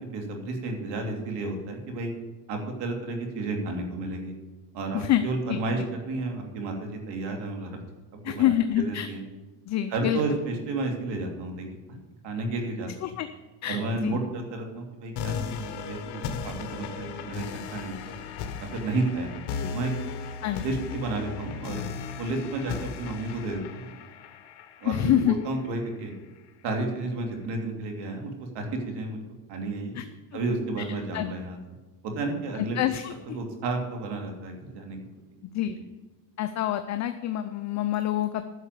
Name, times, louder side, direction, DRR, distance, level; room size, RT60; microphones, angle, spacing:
voice 1, 0.0-2.1 2.5-4.3 4.7-7.8 8.1-9.2 9.9-12.0 12.2-12.9 13.7-18.2 18.6-19.3 19.7-19.9 20.6-21.8 22.2-23.9 24.8-26.1 26.6-29.2 29.5-30.0 30.3-31.6 32.0-32.8 33.3-35.0, right 2 dB, 55° right, 3 dB, 2.9 m, -32 dB
voice 2, 4.9-5.6 8.2-9.1 9.6-10.2 13.0-13.3 13.6-14.2 19.6-19.7 20.4-20.7 24.8-25.3 29.9-30.0 31.1-31.3 32.7-33.4 35.5-35.8 36.4-38.5, left 12 dB, 35° left, 9 dB, 0.6 m, -26 dB
sound 1, 15.2-26.1, left 6 dB, 55° left, 1.5 m, -37 dB
10.5 x 6.5 x 8.2 m, 1.2 s
cardioid pair, 125°, 48 cm